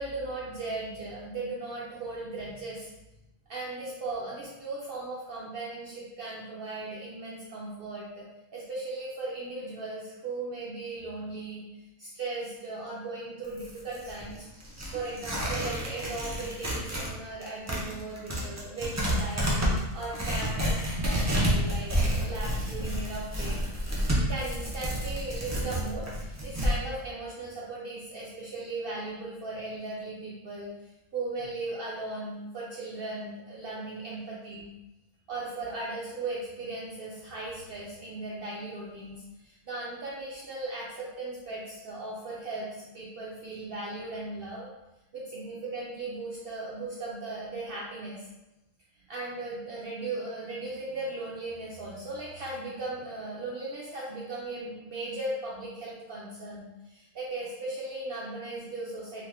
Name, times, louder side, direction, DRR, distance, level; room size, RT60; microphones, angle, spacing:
voice 1, 0.0-2.9 3.5-8.3 8.5-11.6 12.0-14.5 14.9-23.6 24.3-34.7 35.3-44.7 45.1-48.2 49.1-59.3, right 2 dB, 60° right, -6 dB, 0.6 m, -37 dB
Tearing, 13.4-17.1 17.4-26.7, equal, 30° right, 0.3 m, -29 dB
2.9 x 2.4 x 3.3 m, 0.98 s
omnidirectional pair, 1.3 m